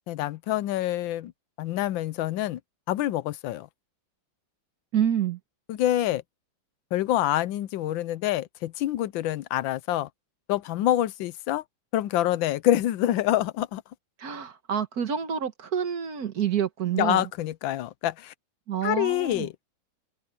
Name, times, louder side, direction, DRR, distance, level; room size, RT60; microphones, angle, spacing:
voice 1, 0.1-1.3 1.6-2.6 2.9-3.7 5.7-6.2 6.9-10.1 10.5-11.6 11.9-13.8 16.9-18.3 18.8-19.5, left 13 dB, 85° left, 1.4 m, -26 dB
voice 2, 4.9-5.4 14.2-17.2 18.7-19.5, right 9 dB, 55° right, 1.6 m, -28 dB
open air
omnidirectional pair, 2.1 m